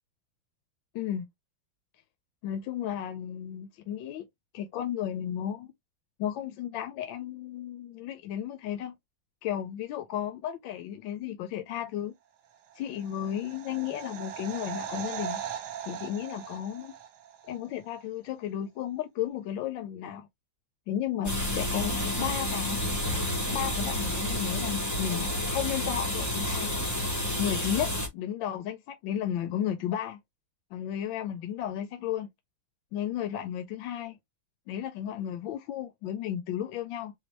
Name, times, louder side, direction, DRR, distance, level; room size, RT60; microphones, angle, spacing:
voice 1, 0.9-1.3 2.4-4.2 4.5-5.7 6.2-8.9 9.4-12.1 12.8-15.4 15.9-16.9 17.4-20.3 20.9-22.8 23.5-26.7 27.4-30.2 30.7-32.3 32.9-34.2 34.7-37.1, left 10 dB, 75° left, 1.3 m, -33 dB
sound 1, 12.7-17.6 17.8-17.9, right 9 dB, 60° right, 1.2 m, -39 dB
sound 2, 21.2-28.1, left 1 dB, 20° left, 0.4 m, -30 dB
4.3 x 2.2 x 3.1 m
omnidirectional pair, 2.3 m